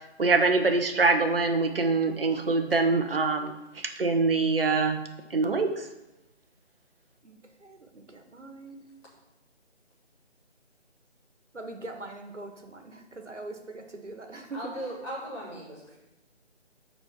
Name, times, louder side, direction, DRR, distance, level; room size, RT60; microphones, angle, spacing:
voice 1, 0.2-5.0 5.3-5.8, right 3 dB, 55° right, 6 dB, 1.2 m, -24 dB
voice 2, 7.2-8.9 11.5-14.8, right 2 dB, 85° right, 5 dB, 1.6 m, -42 dB
voice 3, 14.5-16.0, right 1 dB, 25° left, -6 dB, 3.3 m, -38 dB
8.4 x 4.5 x 5.9 m, 0.94 s
figure-of-eight pair, 160°, 35 cm